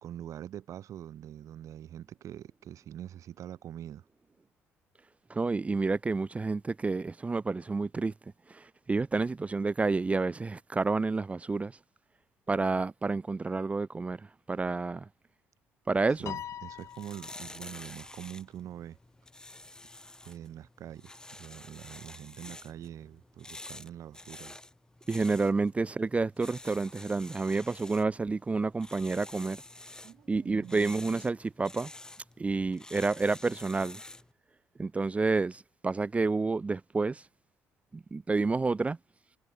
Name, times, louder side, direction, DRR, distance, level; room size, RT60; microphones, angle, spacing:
voice 1, 0.0-4.0 16.2-19.0 20.2-24.6 30.0-31.0, right 11 dB, 65° right, 1.5 m, -44 dB
voice 2, 5.3-8.1 8.5-11.7 12.5-14.2 14.5-15.1 15.9-16.3 25.1-29.6 30.3-31.9 32.4-34.0 34.8-37.2 37.9-39.0, right 3 dB, 25° right, 0.4 m, -29 dB
Piano, 16.3-17.8, left 10 dB, 60° left, 0.6 m, -42 dB
sound 1, 16.7-34.3, left 2 dB, 10° left, 1.0 m, -49 dB
supercardioid pair, 65°, 6 cm